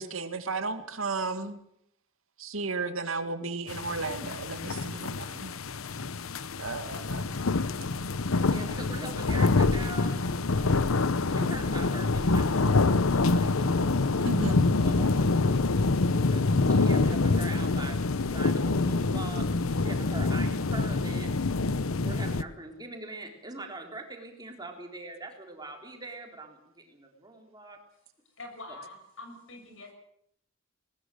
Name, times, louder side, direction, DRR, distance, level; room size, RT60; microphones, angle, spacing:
voice 1, 0.0-1.6 2.4-5.5 6.6-7.2 14.2-14.7, right 3 dB, 75° right, 8 dB, 2.1 m, -34 dB
sound 1, 3.7-22.4, left 3 dB, 85° left, 0.9 m, -26 dB
voice 2, 8.5-10.2 10.6-14.4 14.8-15.7 16.1-21.3 22.0-27.8 28.7-28.8, right 2 dB, 20° right, 2 dB, 3.7 m, -43 dB
voice 3, 28.4-29.9, left 2 dB, 65° left, 5 dB, 6.9 m, -45 dB
20.0 x 20.0 x 7.8 m, 0.72 s
head